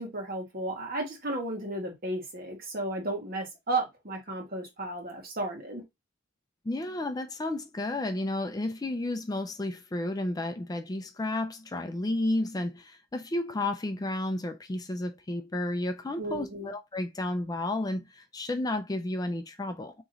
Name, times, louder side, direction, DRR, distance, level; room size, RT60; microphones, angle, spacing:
voice 1, 0.0-5.8 16.2-16.7, right 2 dB, 50° right, 1.5 m, -34 dB
voice 2, 6.6-19.9, left 1 dB, 20° left, 0.4 m, -32 dB
3.7 x 3.0 x 3.8 m
head